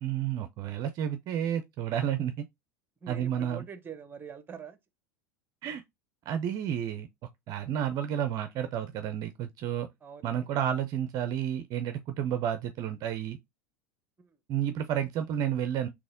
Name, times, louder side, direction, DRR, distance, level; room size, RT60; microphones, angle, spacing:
voice 1, 0.0-2.5 3.1-3.6 5.6-5.8 6.3-7.1 7.5-9.9 10.2-13.4 14.5-15.9, right 10 dB, 45° right, 0.5 m, -31 dB
voice 2, 3.0-4.8 5.7-5.8 10.0-10.5 14.2-14.4, right 7 dB, 25° right, 0.8 m, -45 dB
4.0 x 2.9 x 3.6 m
hypercardioid pair, 85°, 9 cm